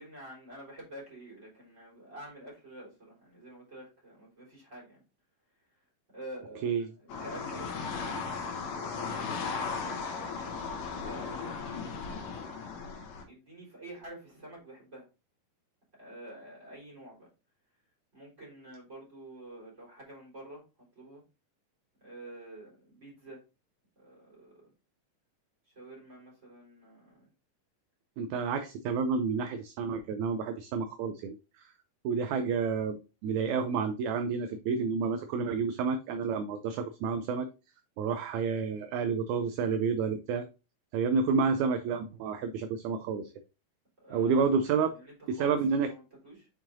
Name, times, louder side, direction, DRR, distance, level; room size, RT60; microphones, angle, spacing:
voice 1, 0.0-5.0 6.1-9.9 11.0-12.2 13.2-15.1 16.0-17.3 18.1-20.6 21.0-21.2 22.0-23.4 24.0-24.6 25.7-27.3 44.0-44.5 44.9-46.5, right 1 dB, 20° right, -4 dB, 4.0 m, -48 dB
sound 1, 7.1-13.2, left 5 dB, 75° left, 2.7 m, -36 dB
voice 2, 28.2-31.7 32.0-37.5 38.0-40.5 40.9-43.3 44.1-44.9 45.3-45.9, right 5 dB, 80° right, 8 dB, 1.9 m, -30 dB
7.2 x 5.7 x 2.6 m, 0.30 s
omnidirectional pair, 3.7 m